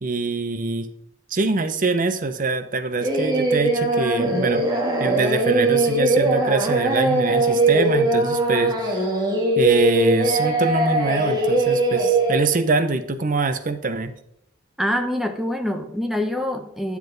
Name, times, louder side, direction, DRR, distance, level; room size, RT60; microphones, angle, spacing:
voice 1, 0.0-0.9 1.3-4.7 5.0-9.0 9.6-14.1, right 3 dB, 40° right, 9 dB, 0.7 m, -24 dB
Singing, 3.0-12.4, right 2 dB, 20° right, 1.6 m, -20 dB
voice 2, 14.8-17.0, left 1 dB, ahead, 6 dB, 0.7 m, -25 dB
9.5 x 7.2 x 3.9 m, 0.75 s
head